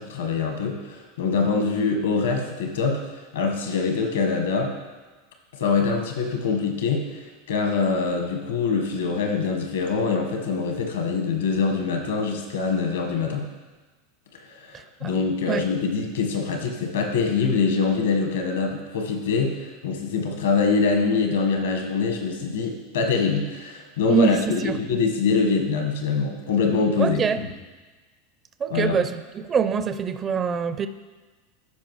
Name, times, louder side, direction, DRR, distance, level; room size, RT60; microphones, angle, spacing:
voice 1, 0.0-3.0 3.3-4.7 5.6-7.0 7.5-13.4 14.5-27.5 28.7-29.0, left 4 dB, 80° left, 3 dB, 1.4 m, -24 dB
voice 2, 24.1-24.8 27.0-27.4 28.6-30.9, right 6 dB, 30° right, 10 dB, 0.5 m, -24 dB
14.0 x 5.0 x 3.2 m, 1.3 s
hypercardioid pair, 100°, 0 cm